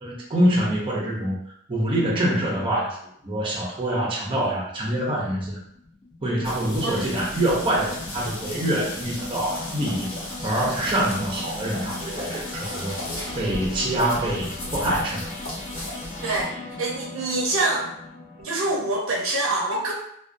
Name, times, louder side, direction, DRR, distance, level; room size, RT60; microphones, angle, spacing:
voice 1, 0.0-1.4 1.7-3.0 3.2-5.6 6.2-10.1 10.4-13.0 13.3-15.2, right 1 dB, 25° right, -4 dB, 0.6 m, -25 dB
sound 1, 5.7-19.0, left 2 dB, 35° left, 0.6 m, -39 dB
sound 2, 6.4-16.4, left 1 dB, 85° left, 0.9 m, -36 dB
voice 2, 6.8-7.1 16.2-16.5 16.8-17.9 18.4-19.9, right 2 dB, 80° right, -2 dB, 0.6 m, -25 dB
2.4 x 2.2 x 2.5 m, 0.71 s
head